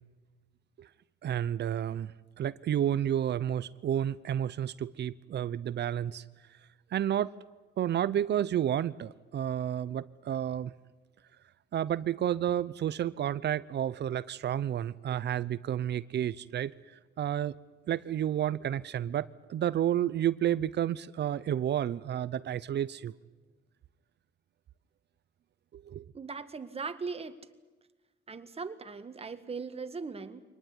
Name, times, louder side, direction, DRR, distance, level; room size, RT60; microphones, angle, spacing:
voice 1, 1.2-2.1 2.4-6.2 6.9-7.3 7.8-10.7 11.7-16.7 17.2-17.5 17.9-23.1 25.7-26.1, right 10 dB, 60° right, 0.7 m, -31 dB
voice 2, 26.1-27.4 28.3-30.4, right 4 dB, 30° right, 1.7 m, -39 dB
24.0 x 19.0 x 9.8 m
cardioid pair, 90°, 20 cm